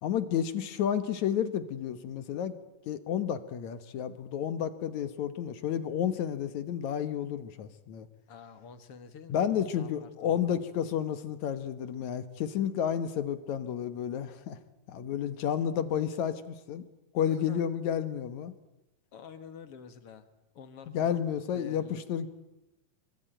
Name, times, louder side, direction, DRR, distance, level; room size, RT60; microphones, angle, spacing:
voice 1, 0.0-2.5 2.9-8.1 9.3-14.6 14.9-16.9 17.1-18.5 20.9-22.3, left 9 dB, 65° left, 12 dB, 2.4 m, -31 dB
voice 2, 8.3-10.6 17.2-17.6 19.1-20.3 20.5-22.0, left 6 dB, 50° left, 10 dB, 2.4 m, -48 dB
25.0 x 24.5 x 9.1 m, 0.95 s
omnidirectional pair, 3.9 m